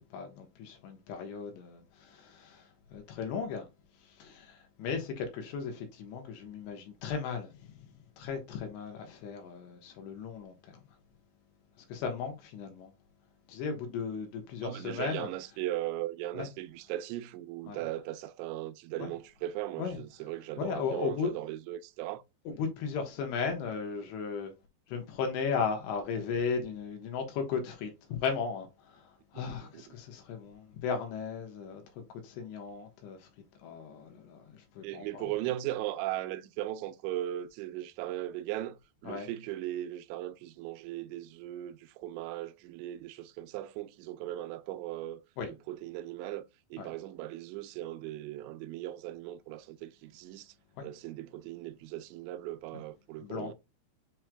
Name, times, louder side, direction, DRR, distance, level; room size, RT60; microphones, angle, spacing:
voice 1, 0.1-3.7 4.0-10.8 11.9-12.9 13.5-15.3 16.3-16.5 17.7-17.8 19.0-19.1 19.8-20.0 20.6-21.3 22.5-24.5 24.9-31.8 32.2-33.3 33.6-35.3 39.0-39.3 45.4-45.5 46.8-46.9 53.2-53.5, left 6 dB, 80° left, 3.3 m, -36 dB
voice 2, 14.6-22.2 29.3-29.8 34.8-38.8 39.0-45.2 45.7-46.4 46.7-50.5 50.8-53.5, right 14 dB, 90° right, 2.8 m, -38 dB
7.5 x 3.1 x 2.2 m
omnidirectional pair, 5.0 m